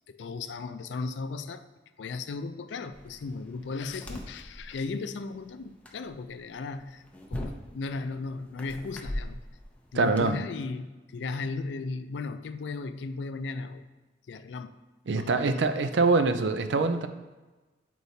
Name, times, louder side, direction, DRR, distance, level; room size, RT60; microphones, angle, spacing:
voice 1, 0.1-1.6 2.0-7.0 7.3-9.4 9.9-13.9 14.3-14.8 15.2-15.6, left 3 dB, 80° left, 10 dB, 0.4 m, -36 dB
sound 1, 2.9-10.2, left 1 dB, 5° left, 0.5 m, -42 dB
voice 2, 9.9-10.4 15.1-17.1, right 3 dB, 80° right, 9 dB, 0.5 m, -24 dB
8.0 x 4.5 x 2.7 m, 1.2 s
head